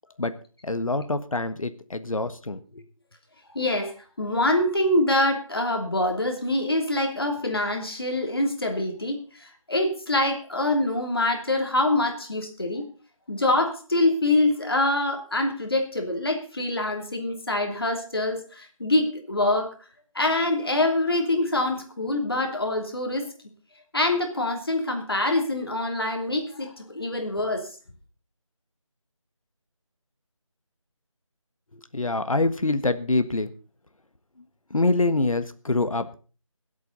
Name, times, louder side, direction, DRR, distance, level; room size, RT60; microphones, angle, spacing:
voice 1, 0.6-2.6 31.9-33.5 34.7-36.2, left 2 dB, 90° left, 10 dB, 1.4 m, -25 dB
voice 2, 3.5-3.9 4.2-12.9 13.3-19.7 20.1-23.3 23.9-27.7, left 2 dB, 45° left, 4 dB, 3.0 m, -25 dB
24.0 x 8.3 x 4.0 m, 0.36 s
figure-of-eight pair, 180°, 17 cm